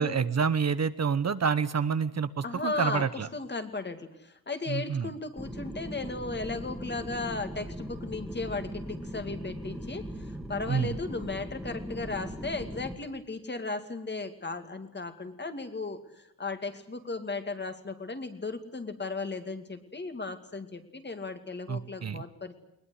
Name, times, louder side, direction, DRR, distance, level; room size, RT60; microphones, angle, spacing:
voice 1, 0.0-3.3 4.7-5.1 10.7-10.9 21.7-22.2, right 6 dB, 45° right, 13 dB, 1.0 m, -28 dB
voice 2, 2.4-3.0 3.3-10.1 10.5-22.6, left 3 dB, 30° left, 8 dB, 2.4 m, -36 dB
sound 1, 5.4-12.9, equal, ahead, 2.4 m, -39 dB
21.0 x 21.0 x 9.8 m, 0.81 s
wide cardioid pair, 145°, 35 cm